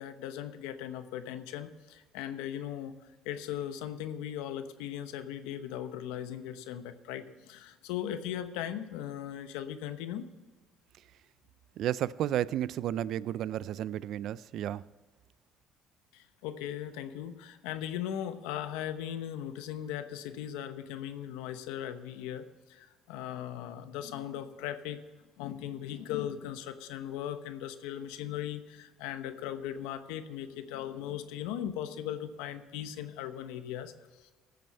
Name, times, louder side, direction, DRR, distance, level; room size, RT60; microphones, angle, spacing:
voice 1, 0.0-2.9 3.2-10.2 16.1-22.4 22.7-25.0 25.4-33.9, left 10 dB, 90° left, 0.9 m, -38 dB
voice 2, 11.8-14.8, right 11 dB, 65° right, 0.4 m, -32 dB
15.0 x 7.7 x 5.5 m
cardioid pair, 100°, 0 cm